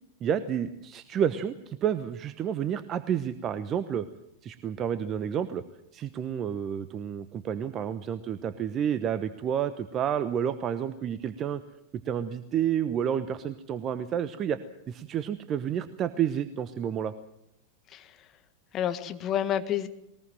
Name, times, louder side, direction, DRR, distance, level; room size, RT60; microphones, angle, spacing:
voice 1, 0.2-4.1 4.4-5.6 5.9-11.6 12.0-14.6 14.9-17.1, right 9 dB, 30° right, 12 dB, 1.0 m, -30 dB
voice 2, 17.9-18.3 18.7-19.9, left 10 dB, 30° left, 9 dB, 1.6 m, -30 dB
21.0 x 20.0 x 7.6 m, 0.80 s
figure-of-eight pair, 90°, 0 cm